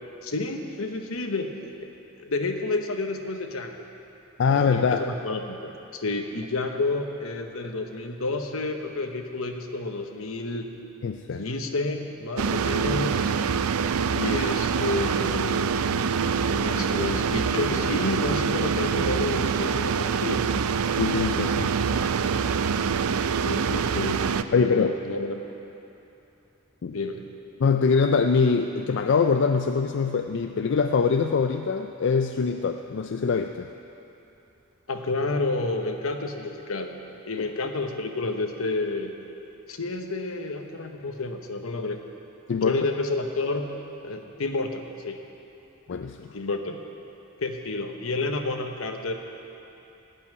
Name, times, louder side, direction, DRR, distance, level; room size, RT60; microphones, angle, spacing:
voice 1, 0.2-1.5 1.8-1.9 2.2-3.8 4.4-10.7 11.3-13.4 14.1-15.7 16.5-20.5 23.4-25.4 26.9-27.2 34.9-37.0 37.3-39.1 39.7-42.0 42.6-43.8 44.0-45.2 46.3-46.8 47.4-49.1, left 3 dB, 75° left, 4 dB, 1.1 m, -30 dB
voice 2, 4.4-5.0 11.0-11.4 21.0-21.7 24.5-25.0 26.8-27.0 27.6-33.7 37.4-37.5 42.5-42.8 45.9-46.3, left 5 dB, 55° left, 6 dB, 0.4 m, -23 dB
sound 1, 12.4-24.4, right 6 dB, 90° right, 0.4 m, -25 dB
16.0 x 5.6 x 9.5 m, 3.0 s
head